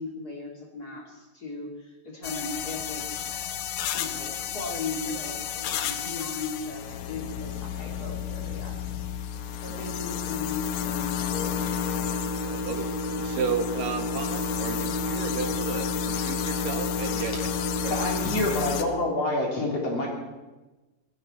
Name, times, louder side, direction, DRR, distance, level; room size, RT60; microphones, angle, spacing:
voice 1, 0.0-3.5 3.9-8.8 9.6-11.5, left 3 dB, 30° left, -1 dB, 2.8 m, -37 dB
sound 1, 2.2-18.8, left 9 dB, 75° left, 2.3 m, -31 dB
sound 2, 11.3-18.3, right 2 dB, 10° left, 4.4 m, -34 dB
voice 2, 12.4-17.3 17.8-17.9, right 6 dB, 80° right, 6 dB, 3.0 m, -33 dB
voice 3, 17.9-20.1, left 1 dB, 45° left, -2 dB, 4.3 m, -27 dB
20.5 x 14.5 x 4.4 m, 1.1 s
omnidirectional pair, 3.9 m